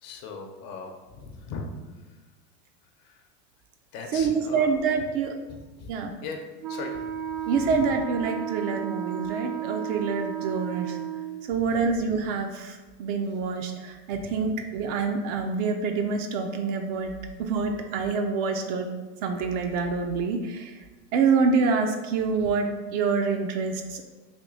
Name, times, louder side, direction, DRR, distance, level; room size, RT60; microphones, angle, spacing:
voice 1, 0.0-1.7 3.9-4.7 5.8-5.9 6.2-6.4 6.7-6.9 7.6-7.9 11.7-11.8 14.1-14.2 22.4-22.5, left 5 dB, 45° left, 3 dB, 0.8 m, -38 dB
voice 2, 4.1-5.4 5.9-6.1 7.5-11.0 11.5-17.1 17.4-18.9 19.2-20.7 21.1-24.0, right 5 dB, 45° right, 4 dB, 0.5 m, -26 dB
Wind instrument woodwind instrument, 6.6-11.5, right 11 dB, 85° right, 0.7 m, -33 dB
3.5 x 2.7 x 3.9 m, 1.2 s
hypercardioid pair, 95°, 49 cm